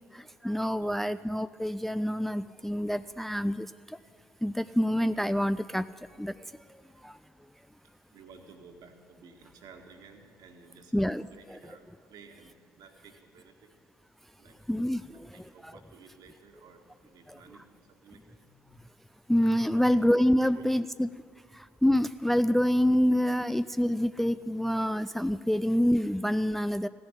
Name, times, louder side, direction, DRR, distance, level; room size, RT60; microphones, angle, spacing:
voice 1, 0.1-3.7 4.4-5.9 6.2-6.3 7.0-7.1 10.9-11.3 14.7-15.0 15.6-15.7 17.3-17.4 19.3-21.1 21.6-26.9, equal, 5° left, 13 dB, 0.3 m, -26 dB
voice 2, 0.8-1.2 4.7-4.8 8.1-13.7 14.4-14.6 15.1-18.8 19.7-20.0 20.4-20.6, right 5 dB, 60° right, 4 dB, 1.8 m, -54 dB
16.0 x 7.0 x 10.0 m, 2.2 s
hypercardioid pair, 50°, 8 cm